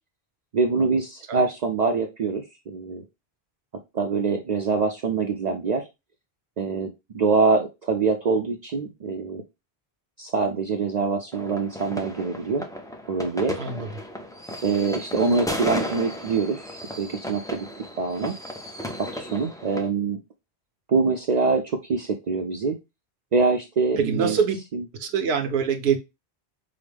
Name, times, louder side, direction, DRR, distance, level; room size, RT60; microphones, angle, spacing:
voice 1, 0.5-3.0 3.9-5.9 6.6-9.4 10.2-12.6 13.1-13.6 14.6-16.6 17.0-17.7 18.0-18.3 19.0-20.2 20.9-22.8 23.3-24.4 24.7-24.8, right 4 dB, 55° right, 0.5 m, -24 dB
sound 1, 11.3-19.9, equal, 5° left, 0.3 m, -34 dB
voice 2, 13.6-13.9 24.0-24.6 25.0-26.0, right 6 dB, 75° right, 1.0 m, -24 dB
4.8 x 2.1 x 3.3 m
omnidirectional pair, 1.1 m